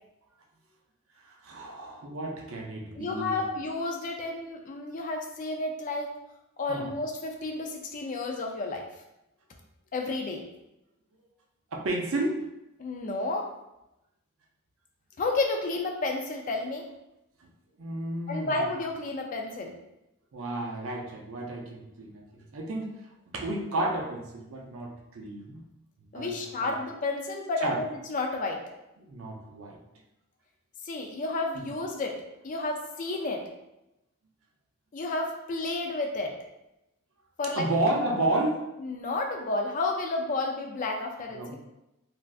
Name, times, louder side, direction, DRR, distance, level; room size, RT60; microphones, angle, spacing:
voice 1, 1.4-3.4 6.7-6.9 11.7-12.4 17.8-18.6 20.3-22.2 22.5-22.9 23.3-25.6 26.1-26.3 26.6-26.7 27.6-27.8 29.1-29.8 37.6-38.6 41.3-41.5, right 1 dB, 65° right, 1 dB, 0.5 m, -31 dB
voice 2, 2.9-6.1 6.6-8.8 9.9-10.4 12.8-13.5 15.2-16.9 18.3-19.7 26.1-28.6 30.9-33.4 34.9-36.3 37.4-37.7 38.8-41.5, left 2 dB, 35° left, 2 dB, 0.3 m, -31 dB
3.3 x 2.5 x 2.3 m, 0.91 s
head